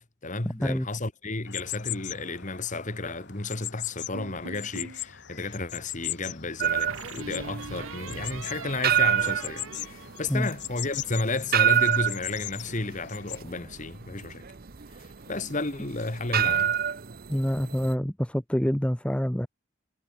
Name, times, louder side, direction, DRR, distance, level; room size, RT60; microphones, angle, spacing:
voice 1, 0.0-14.4 14.9-16.8, left 2 dB, 35° left, 1.7 m, -33 dB
sound 1, 1.5-13.4, left 13 dB, 55° left, 2.5 m, -40 dB
sound 2, 4.1-5.0 6.9-10.6, right 4 dB, 75° right, 3.3 m, -41 dB
sound 3, 6.6-17.9, right 9 dB, 45° right, 0.7 m, -27 dB
voice 2, 17.3-19.5, equal, 5° left, 0.9 m, -26 dB
head